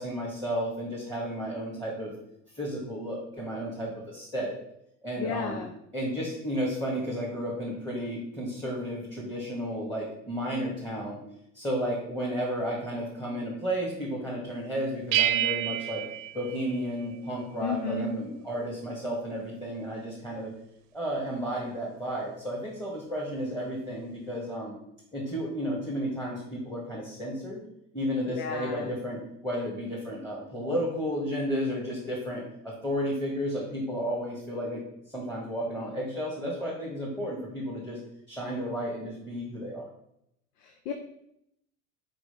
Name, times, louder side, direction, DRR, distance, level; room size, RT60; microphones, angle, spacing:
voice 1, 0.0-2.1 2.5-4.5 5.0-5.6 5.9-11.2 11.5-16.0 16.3-20.5 20.9-24.7 25.1-27.6 27.9-34.8 35.1-38.0 38.3-39.9, equal, 5° left, -4 dB, 1.9 m, -32 dB
voice 2, 5.2-5.7 17.6-18.1 28.3-28.9 40.6-40.9, left 5 dB, 80° left, 4 dB, 0.9 m, -33 dB
sound 1, 15.1-17.3, right 12 dB, 60° right, 0.7 m, -29 dB
4.9 x 4.8 x 5.1 m, 0.76 s
supercardioid pair, 105°, 46 cm